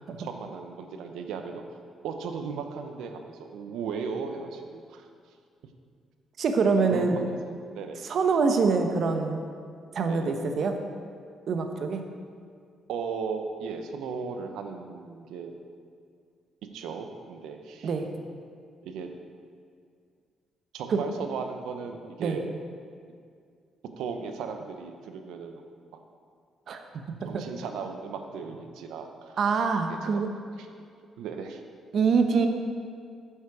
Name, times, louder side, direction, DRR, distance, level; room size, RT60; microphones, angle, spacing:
voice 1, 0.0-1.6 2.0-5.1 6.8-8.0 10.1-10.3 12.9-15.6 16.7-17.9 18.8-19.1 20.7-22.4 24.0-25.6 27.3-29.4 30.0-30.2 30.6-30.7 31.2-31.6, right 5 dB, 90° right, 6 dB, 0.8 m, -36 dB
voice 2, 6.4-7.3 8.0-9.5 9.9-10.8 11.5-12.0 17.8-18.1 20.9-21.0 22.2-22.4 26.7-27.4 29.4-30.3 31.9-32.5, right 4 dB, 60° right, 6 dB, 0.9 m, -25 dB
8.4 x 7.4 x 4.8 m, 2.2 s
cardioid pair, 90°, 0 cm